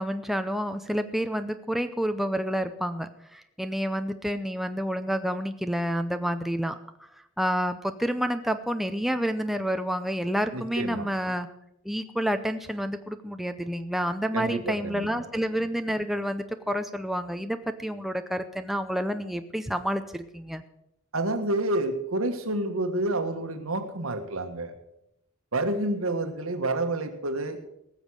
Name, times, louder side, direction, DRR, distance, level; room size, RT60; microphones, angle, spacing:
voice 1, 0.0-7.1 7.4-11.5 11.8-20.6, equal, ahead, 8 dB, 0.6 m, -29 dB
voice 2, 10.5-11.1 14.3-15.1 21.1-24.7 25.5-27.6, right 2 dB, 80° right, 7 dB, 1.5 m, -29 dB
18.5 x 7.2 x 6.4 m, 0.80 s
head